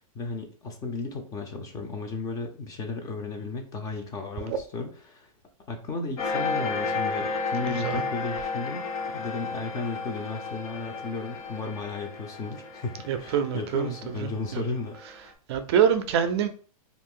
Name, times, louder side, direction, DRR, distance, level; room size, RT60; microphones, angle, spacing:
voice 1, 0.1-5.3 5.7-8.8 9.1-15.0, left 3 dB, 20° left, 0.5 m, -34 dB
sound 1, 6.2-15.2, left 4 dB, 85° left, 0.8 m, -33 dB
voice 2, 7.6-8.0 13.1-13.9 14.2-14.6 15.5-16.5, right 8 dB, 50° right, 0.4 m, -25 dB
2.5 x 2.4 x 3.6 m
hypercardioid pair, 140°, 18 cm